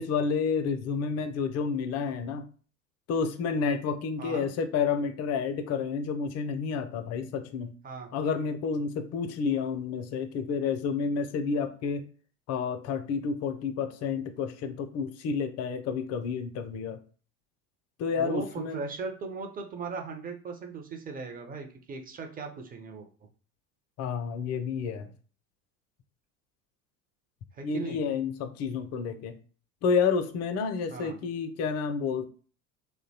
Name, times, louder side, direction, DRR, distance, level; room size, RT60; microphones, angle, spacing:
voice 1, 0.0-2.4 3.1-7.7 8.1-12.0 12.5-17.0 18.0-18.8 24.0-25.1 27.6-29.4 29.8-32.3, left 5 dB, 40° left, 8 dB, 0.4 m, -30 dB
voice 2, 18.1-23.1 27.5-28.0 30.9-31.2, right 5 dB, 20° right, 4 dB, 0.5 m, -38 dB
2.7 x 2.1 x 2.7 m, 0.40 s
hypercardioid pair, 75°, 44 cm